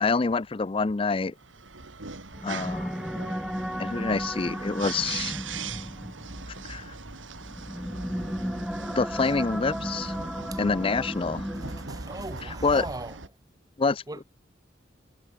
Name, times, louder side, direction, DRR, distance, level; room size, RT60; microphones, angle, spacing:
voice 1, 0.0-1.3 2.4-3.1 3.8-5.4 6.7-6.9 9.0-10.1 10.6-11.4 12.6-12.8 13.8-14.2, left 4 dB, 30° left, 0.5 m, -26 dB
sound 1, 1.4-13.3, right 4 dB, 90° right, 2.5 m, -40 dB
sound 2, 2.3-12.2, equal, ahead, 1.9 m, -35 dB
voice 2, 11.5-13.2 14.1-14.2, right 2 dB, 20° right, 1.2 m, -39 dB
head